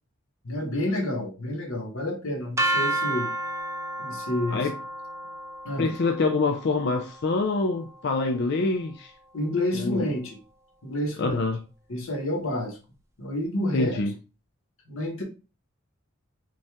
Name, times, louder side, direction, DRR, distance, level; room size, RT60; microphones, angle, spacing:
voice 1, 0.4-3.3 4.0-4.7 5.6-5.9 9.3-10.4 10.8-11.4 11.9-12.8 13.2-14.0 14.9-15.2, left 1 dB, 85° left, 1.3 m, -29 dB
sound 1, 2.6-8.5, right 1 dB, 15° right, 0.5 m, -32 dB
voice 2, 5.8-9.1 9.7-10.1 11.2-11.6 13.7-14.1, left 3 dB, 55° left, 0.4 m, -25 dB
5.3 x 2.4 x 3.4 m
head